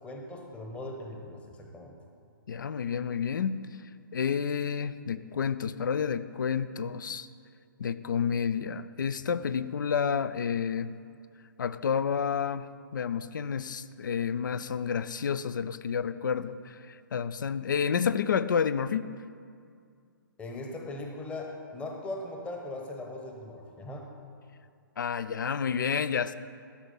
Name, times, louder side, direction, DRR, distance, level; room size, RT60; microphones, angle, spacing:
voice 1, 0.0-2.0 20.4-24.1, left 2 dB, 10° left, 1 dB, 1.0 m, -39 dB
voice 2, 2.5-3.6 4.1-7.3 7.8-11.0 11.6-19.1 25.0-26.3, left 7 dB, 60° left, 14 dB, 0.4 m, -30 dB
13.0 x 6.1 x 5.4 m, 2.2 s
figure-of-eight pair, 130°, 12 cm